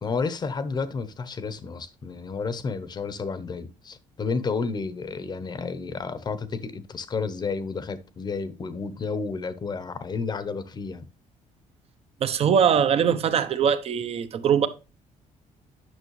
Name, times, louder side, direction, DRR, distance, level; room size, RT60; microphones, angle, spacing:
voice 1, 0.0-11.1, left 4 dB, 35° left, 0.8 m, -31 dB
voice 2, 12.2-14.7, right 8 dB, 50° right, 0.8 m, -22 dB
9.2 x 6.0 x 3.1 m
cardioid pair, 110°, 13 cm